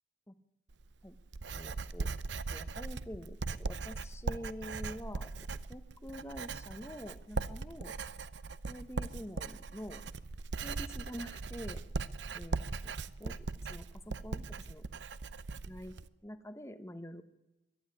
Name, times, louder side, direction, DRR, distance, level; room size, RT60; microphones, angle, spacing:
Writing, 0.7-16.1, right 3 dB, 70° right, 0.7 m, -39 dB
voice 1, 1.5-2.1 2.5-5.3 5.7-7.9 8.7-10.0 10.6-11.8 12.3-12.6 12.8-12.9 13.2-14.9 15.7-15.9 16.2-17.2, equal, 15° left, 10 dB, 1.2 m, -46 dB
22.5 x 12.5 x 9.9 m, 0.97 s
head